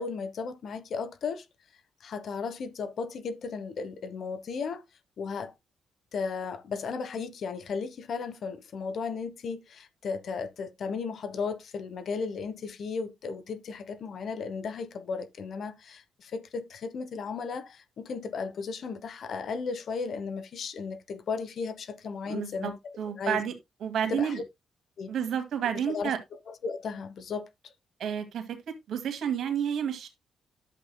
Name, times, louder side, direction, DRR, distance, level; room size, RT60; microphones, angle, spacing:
voice 1, 0.0-1.4 2.0-4.8 5.2-5.5 6.1-23.4 24.0-24.4 25.0-25.1 25.9-26.1 26.5-27.7, left 5 dB, 65° left, 1.2 m, -35 dB
voice 2, 22.2-23.5 23.8-24.4 25.1-26.2 28.0-30.1, right 8 dB, 75° right, 2.1 m, -30 dB
11.5 x 7.9 x 2.2 m
supercardioid pair, 60°, 0 cm